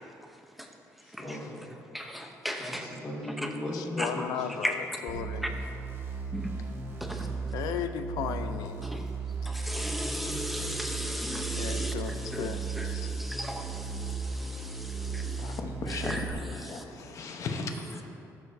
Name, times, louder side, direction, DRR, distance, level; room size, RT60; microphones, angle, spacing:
voice 1, 1.0-1.7 2.6-4.6, left 1 dB, 30° left, -9 dB, 2.2 m, -38 dB
voice 2, 1.9-2.9 3.4-3.5 4.0-4.3 4.6-4.7 5.4-5.5 6.3-6.5 7.0-7.3 8.8-9.1 9.5-15.6 15.9-16.8, equal, ahead, 2 dB, 0.8 m, -36 dB
voice 3, 4.0-4.7 5.0-5.4 7.5-8.8 11.6-12.1 12.4-12.6, left 8 dB, 80° left, 9 dB, 0.5 m, -34 dB
sound 1, 5.1-16.3, right 4 dB, 40° right, 1.4 m, -36 dB
voice 4, 15.4-18.0, left 3 dB, 55° left, 4 dB, 1.0 m, -36 dB
14.5 x 6.5 x 2.7 m, 2.6 s
cardioid pair, 110°, 6 cm